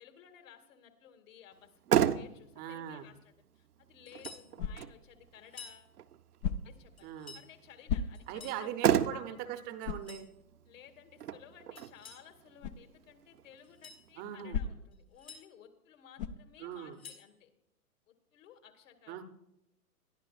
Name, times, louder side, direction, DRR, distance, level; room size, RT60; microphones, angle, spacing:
voice 1, 0.0-5.9 6.6-9.4 10.7-17.5 18.1-19.2, left 9 dB, 55° left, 6 dB, 2.2 m, -57 dB
Motor vehicle (road), 1.5-14.5, right 10 dB, 75° right, 0.8 m, -36 dB
voice 2, 2.6-3.1 7.0-7.4 8.3-10.3 14.2-14.6 16.6-17.0 19.1-19.2, right 9 dB, 20° right, 10 dB, 0.7 m, -41 dB
sound 1, 4.1-4.5 5.4-5.8 7.0-7.5 8.1-8.6 9.8-10.3 11.8-12.3 13.6-14.0 14.9-15.4 16.7-17.3, left 5 dB, 70° left, 5.0 m, -51 dB
sound 2, 4.6-5.1 6.4-6.9 7.9-8.5 9.0-9.1 9.8-10.2 12.6-12.9 14.5-15.0 16.2-16.5, left 6 dB, 30° left, 0.4 m, -36 dB
21.0 x 12.5 x 2.4 m, 0.84 s
hypercardioid pair, 120°, 46 cm